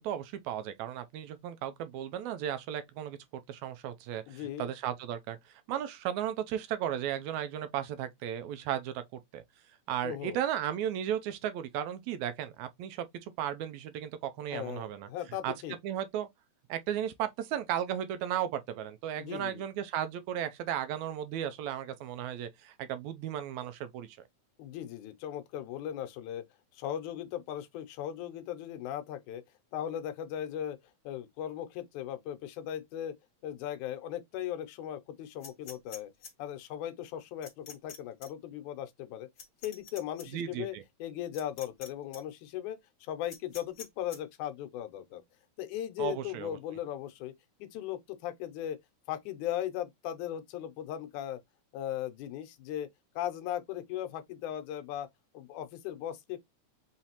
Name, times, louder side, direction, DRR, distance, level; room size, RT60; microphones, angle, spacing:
voice 1, 0.0-3.2 3.5-9.0 9.3-9.4 9.9-15.1 15.4-15.5 15.8-16.3 16.7-24.2 40.3-40.8 46.0-46.6, right 10 dB, 80° right, 1.9 m, -35 dB
voice 2, 4.3-4.7 10.0-10.4 14.5-15.8 19.2-19.7 24.6-26.4 26.7-29.4 29.7-30.8 31.0-33.1 33.4-36.1 36.4-39.3 39.6-45.2 45.6-47.3 47.6-48.8 49.1-51.4 51.7-52.9 53.2-55.1 55.3-56.5, left 11 dB, 85° left, 2.2 m, -38 dB
sound 1, 35.4-36.3 37.4-38.0 38.2-38.3 39.4-40.2 41.3-41.9 42.1-42.2 43.3-44.2, left 6 dB, 35° left, 2.3 m, -46 dB
5.6 x 3.2 x 2.9 m
omnidirectional pair, 3.4 m